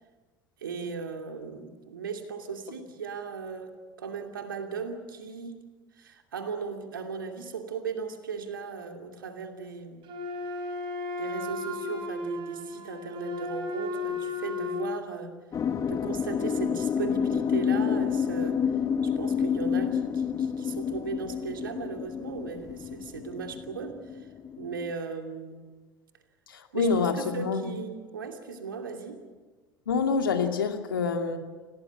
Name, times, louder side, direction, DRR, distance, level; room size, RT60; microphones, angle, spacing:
voice 1, 0.6-5.6 5.9-10.0 11.1-15.3 15.9-18.6 19.2-24.3 24.6-25.6 26.7-29.2, right 5 dB, 80° right, 5 dB, 2.7 m, -37 dB
Wind instrument woodwind instrument, 10.0-15.0, left 3 dB, 45° right, 4.7 m, -34 dB
sound 1, 15.5-24.9, left 7 dB, 30° left, 1.0 m, -29 dB
voice 2, 26.5-27.7 29.9-31.4, left 5 dB, 80° left, 5 dB, 2.3 m, -27 dB
27.5 x 18.5 x 8.7 m, 1.4 s
figure-of-eight pair, 75°, 11 cm